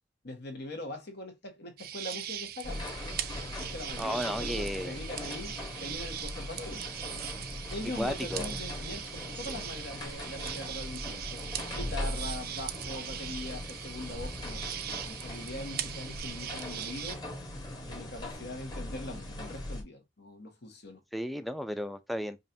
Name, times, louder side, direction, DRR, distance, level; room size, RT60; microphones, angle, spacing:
voice 1, 0.2-2.8 3.6-6.8 7.7-11.4 11.7-14.6 14.9-17.2 17.9-21.0, left 1 dB, 65° left, 1.5 m, -42 dB
sound 1, 1.8-17.1, right 11 dB, 55° right, 0.5 m, -40 dB
sound 2, 2.6-19.8, left 1 dB, 25° left, 1.4 m, -40 dB
voice 2, 4.0-5.0 8.0-8.6 21.1-22.4, equal, ahead, 0.5 m, -34 dB
5.3 x 2.6 x 2.7 m
head